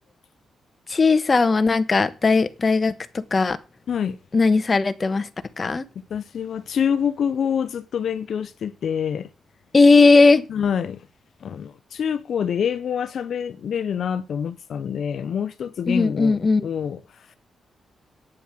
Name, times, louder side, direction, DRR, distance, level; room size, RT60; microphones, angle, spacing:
voice 1, 0.9-2.9 3.3-3.6 4.3-5.3 5.6-5.8 9.7-10.4 15.9-16.7, left 3 dB, 35° left, 1.1 m, -17 dB
voice 2, 3.9-4.2 6.1-9.3 10.5-11.1 11.4-17.4, left 8 dB, 65° left, 0.6 m, -26 dB
9.1 x 7.1 x 7.3 m
cardioid pair, 90°, 0 cm